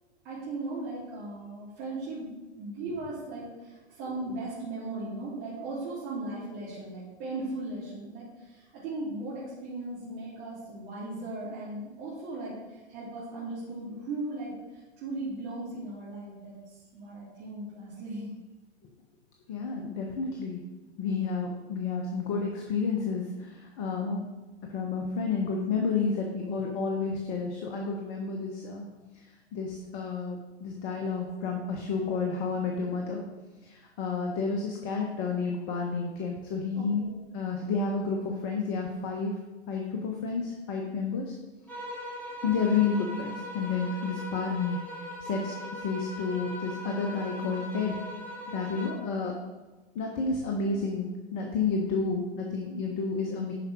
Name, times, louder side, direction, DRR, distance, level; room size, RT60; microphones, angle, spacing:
voice 1, 0.2-2.3 2.6-18.3 36.7-37.1, right 2 dB, 40° right, -9 dB, 3.1 m, -37 dB
voice 2, 19.5-20.6 21.0-24.2 24.7-28.9 29.5-33.2 33.6-37.0 37.3-39.3 39.7-41.3 42.4-48.0 48.5-49.3 49.9-53.5, left 4 dB, 35° left, 1 dB, 1.3 m, -30 dB
sound 1, 41.7-49.1, equal, 5° left, 2.4 m, -40 dB
11.0 x 5.0 x 4.8 m, 1.2 s
hypercardioid pair, 110°, 34 cm